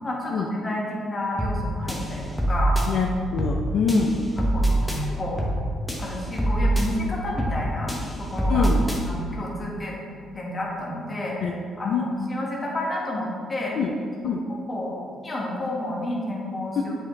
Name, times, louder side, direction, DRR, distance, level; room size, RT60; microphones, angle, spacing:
voice 1, 0.0-2.8 4.5-5.4 6.0-8.7 9.1-10.0 10.3-11.4 11.8-13.8 14.7-16.9, left 1 dB, 30° left, -3 dB, 1.5 m, -30 dB
sound 1, 1.4-1.6 1.9-2.9 3.4-3.6 3.9-5.0 5.4-5.6 5.9-6.9 7.4-7.6 7.9-9.0, right 1 dB, 5° left, 1.1 m, -24 dB
voice 2, 2.9-4.1 8.5-8.8 11.4-11.5 11.8-12.1 13.8-13.9 14.2-14.4 16.8-16.9, left 5 dB, 75° left, 1 dB, 0.5 m, -24 dB
7.5 x 4.8 x 3.2 m, 2.2 s
cardioid pair, 90°, 0 cm